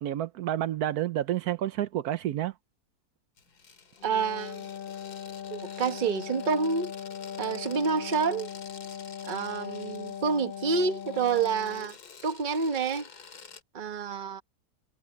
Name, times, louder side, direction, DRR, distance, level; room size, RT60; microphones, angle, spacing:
voice 1, 0.0-2.5, right 12 dB, 80° right, 1.2 m, -29 dB
sound 1, 3.4-13.6, left 6 dB, 85° left, 2.6 m, -50 dB
Wind instrument woodwind instrument, 4.0-12.0, left 8 dB, 55° left, 0.6 m, -40 dB
voice 2, 4.0-4.6 5.5-6.9 7.4-8.5 9.3-12.0 12.2-13.0 13.7-14.4, right 5 dB, 35° right, 1.1 m, -28 dB
omnidirectional pair, 1.7 m